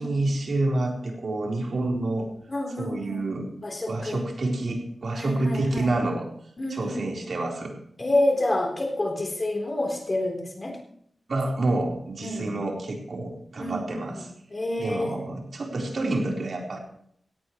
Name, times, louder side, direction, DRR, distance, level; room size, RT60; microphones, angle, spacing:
voice 1, 0.0-2.3 2.8-3.5 3.9-6.3 6.7-7.7 11.3-14.3 14.8-16.8, right 2 dB, 65° right, -1 dB, 4.2 m, -28 dB
voice 2, 2.5-3.2 3.6-4.2 5.2-5.9 6.6-7.1 8.0-10.8 12.2-12.5 13.6-14.2 14.5-15.2 15.7-16.0, left 1 dB, 30° left, 2 dB, 3.9 m, -28 dB
17.5 x 17.0 x 3.2 m, 0.68 s
wide cardioid pair, 135°, 0 cm